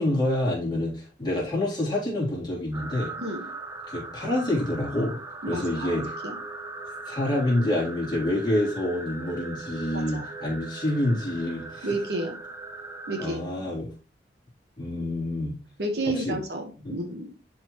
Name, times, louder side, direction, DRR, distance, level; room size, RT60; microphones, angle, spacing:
voice 1, 0.0-3.1 3.9-5.2 5.5-6.0 7.0-11.9 13.2-13.9 14.8-15.6 16.0-16.4 16.8-16.9, left 1 dB, 25° left, -5 dB, 3.4 m, -27 dB
sound 1, 2.7-13.3, right 2 dB, 20° right, 0.9 m, -39 dB
voice 2, 5.4-6.4 9.9-10.3 11.8-12.4 13.1-13.4 15.8-17.3, right 2 dB, 65° right, 4 dB, 1.4 m, -31 dB
11.0 x 4.5 x 3.1 m, 0.35 s
head